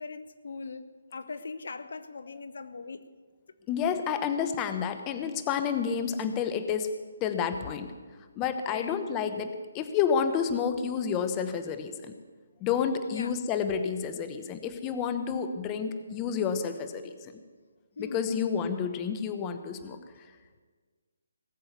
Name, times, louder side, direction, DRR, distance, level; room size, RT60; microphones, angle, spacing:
voice 1, 0.0-3.1 8.6-9.0 13.1-13.3 18.0-18.8, left 4 dB, 65° left, 13 dB, 0.8 m, -40 dB
voice 2, 3.7-6.9 7.2-7.9 8.4-12.1 12.6-17.3 18.0-20.0, left 7 dB, 20° left, 9 dB, 1.0 m, -30 dB
18.5 x 7.7 x 8.2 m, 1.4 s
hypercardioid pair, 155°, 0 cm